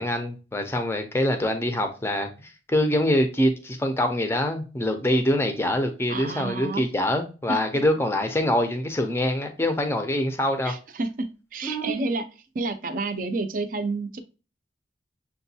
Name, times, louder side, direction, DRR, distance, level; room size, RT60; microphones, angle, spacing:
voice 1, 0.0-10.7 11.6-12.1, left 1 dB, 15° left, 0.5 m, -25 dB
voice 2, 6.1-6.9 7.5-7.6 10.6-12.3 12.5-14.2, right 3 dB, 50° right, 0.5 m, -30 dB
6.7 x 2.2 x 2.7 m
head